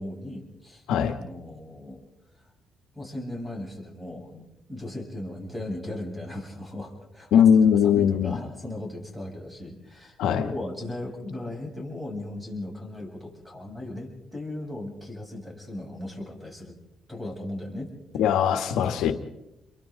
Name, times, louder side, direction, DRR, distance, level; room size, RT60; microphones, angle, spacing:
voice 1, 0.0-0.8 1.2-2.0 2.9-7.4 7.8-16.7 17.1-18.2, left 1 dB, 5° right, 8.0 m, -37 dB
voice 2, 7.3-8.3 10.2-10.5 18.2-19.1, left 8 dB, 90° left, 1.6 m, -20 dB
29.0 x 23.0 x 4.0 m
cardioid pair, 90°, 0 cm